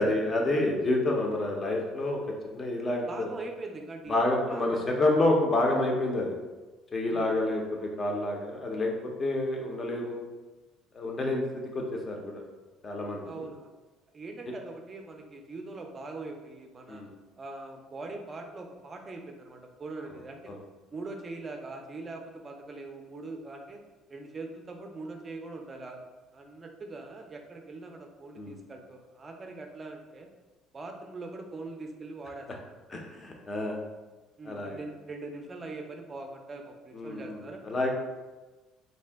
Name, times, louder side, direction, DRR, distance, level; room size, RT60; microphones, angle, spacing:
voice 1, 0.0-2.2 2.5-3.3 4.1-6.3 6.9-10.2 10.9-11.4 11.7-12.4 12.8-13.4 16.9-17.1 20.5-20.6 28.4-28.6 32.9-33.8 34.5-34.8 36.9-37.9, left 2 dB, 30° left, 1 dB, 0.6 m, -28 dB
voice 2, 3.1-4.2 4.5-5.1 7.1-7.3 13.2-13.7 14.1-17.0 17.4-20.5 20.9-23.8 24.1-26.0 26.3-30.3 30.7-32.7 34.4-37.6, right 3 dB, 30° right, 3 dB, 0.4 m, -42 dB
2.6 x 2.1 x 3.3 m, 1.2 s
cardioid pair, 110°, 0 cm